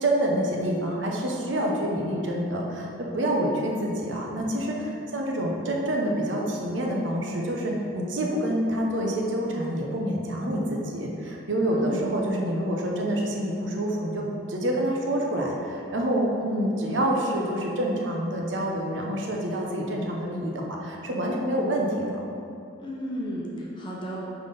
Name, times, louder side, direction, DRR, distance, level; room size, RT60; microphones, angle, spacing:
voice 1, 0.0-22.0, right 1 dB, 75° right, -1 dB, 0.9 m, -27 dB
voice 2, 22.8-24.2, equal, 25° left, -4 dB, 0.9 m, -34 dB
5.8 x 3.6 x 5.3 m, 2.6 s
head